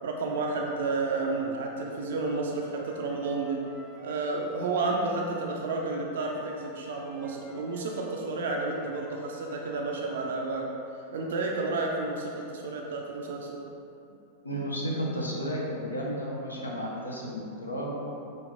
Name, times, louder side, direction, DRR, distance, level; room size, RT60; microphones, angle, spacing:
voice 1, 0.0-3.6 4.0-10.7 11.1-13.6, right 3 dB, 60° right, 0 dB, 0.4 m, -31 dB
Wind instrument woodwind instrument, 1.9-5.4 6.2-9.9, left 1 dB, 10° left, 0.7 m, -50 dB
voice 2, 14.4-18.2, equal, 80° left, -3 dB, 0.6 m, -33 dB
5.1 x 2.6 x 2.5 m, 2.6 s
figure-of-eight pair, 90°, 0 cm